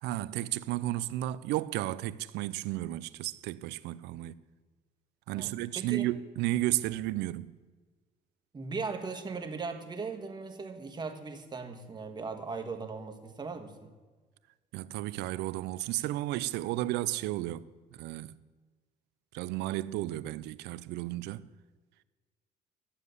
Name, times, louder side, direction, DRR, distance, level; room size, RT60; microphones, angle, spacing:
voice 1, 0.0-4.4 5.3-7.6 14.7-18.3 19.3-21.5, right 15 dB, 85° right, 0.5 m, -33 dB
voice 2, 5.3-6.0 8.5-13.9, right 4 dB, 25° right, 1.5 m, -38 dB
11.5 x 7.4 x 8.2 m
cardioid pair, 110°, 17 cm